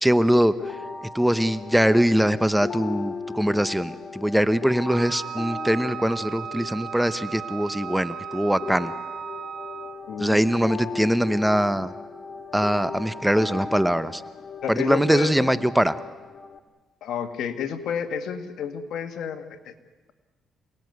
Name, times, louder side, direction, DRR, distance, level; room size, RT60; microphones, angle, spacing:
voice 1, 0.0-0.5 1.0-8.9 10.2-11.9 12.5-14.2 14.7-16.0, equal, 5° right, 14 dB, 0.9 m, -22 dB
sound 1, 0.6-16.6, left 4 dB, 45° left, 2.5 m, -37 dB
Wind instrument woodwind instrument, 4.9-10.1, right 10 dB, 80° right, 1.4 m, -36 dB
voice 2, 10.1-10.6 14.6-15.7 17.0-19.7, left 7 dB, 75° left, 8 dB, 2.0 m, -31 dB
28.0 x 18.5 x 9.5 m, 1.3 s
cardioid pair, 90°, 0 cm